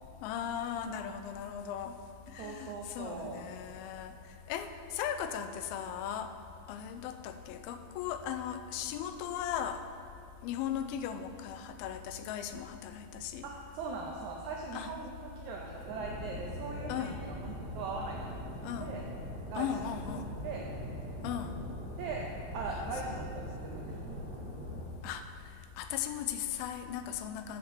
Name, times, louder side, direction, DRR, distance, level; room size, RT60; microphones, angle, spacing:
voice 1, 0.2-2.0 2.3-4.1 4.5-6.3 6.7-9.8 10.4-13.5 14.7-14.9 16.9-17.2 18.6-18.9 19.6-20.3 21.2-21.6 22.7-23.3 25.0-25.2 25.8-27.6, left 9 dB, 90° left, 8 dB, 2.4 m, -37 dB
voice 2, 2.4-3.5 13.4-18.5 18.8-19.0 19.5-19.7 20.4-20.7 22.0-22.2 22.5-24.2, right 4 dB, 85° right, 0 dB, 1.6 m, -40 dB
sound 1, 15.8-24.9, equal, 35° right, 1.5 m, -42 dB
8.0 x 6.0 x 6.9 m, 2.6 s
omnidirectional pair, 4.2 m